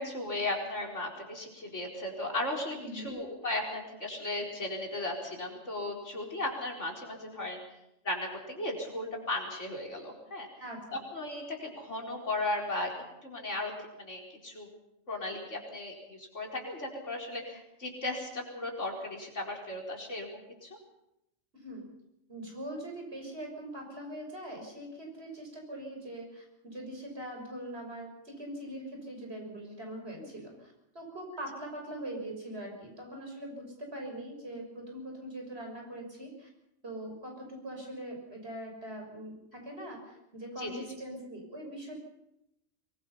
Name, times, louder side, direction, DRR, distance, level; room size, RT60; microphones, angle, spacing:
voice 1, 0.0-7.6 8.0-10.5 10.9-12.9 13.2-13.7 14.0-14.7 15.1-20.8 30.2-30.3 40.6-40.7, left 2 dB, 70° left, 0 dB, 4.9 m, -36 dB
voice 2, 2.7-3.1 10.6-11.0 21.5-21.8 22.3-36.5 36.8-42.0, right 1 dB, 55° right, 1 dB, 6.7 m, -42 dB
23.5 x 21.5 x 5.7 m, 0.84 s
omnidirectional pair, 1.3 m